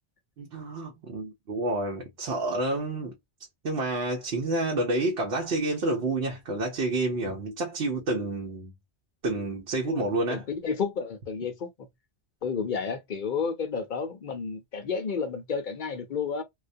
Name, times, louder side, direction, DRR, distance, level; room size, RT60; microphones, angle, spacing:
voice 1, 0.4-3.1 3.6-8.7 9.2-10.4, right 2 dB, 70° right, 0.9 m, -29 dB
voice 2, 9.9-11.7 12.4-16.4, left 5 dB, 55° left, 0.7 m, -31 dB
2.3 x 2.1 x 2.6 m
omnidirectional pair, 1.1 m